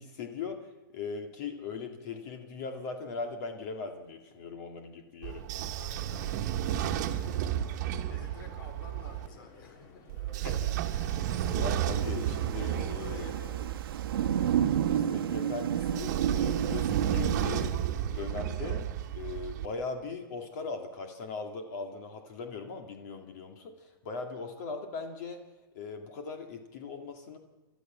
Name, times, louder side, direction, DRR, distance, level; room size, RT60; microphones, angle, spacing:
voice 1, 0.0-5.5 10.4-13.2 14.4-17.7 18.0-18.9 19.1-25.4 25.7-27.4, left 4 dB, 45° left, 4 dB, 2.3 m, -40 dB
Train / Sliding door, 5.2-9.3 10.1-14.9 15.8-19.7, right 11 dB, 45° right, 1.5 m, -33 dB
voice 2, 5.7-7.3 8.0-10.1 12.7-13.8, left 4 dB, 70° left, 6 dB, 4.8 m, -51 dB
sound 1, 6.1-12.2, left 4 dB, 30° left, 2.6 m, -54 dB
Thunder / Rain, 11.3-17.7, right 9 dB, 80° right, 1.3 m, -31 dB
30.0 x 13.0 x 7.4 m, 1.2 s
hypercardioid pair, 155°, 12 cm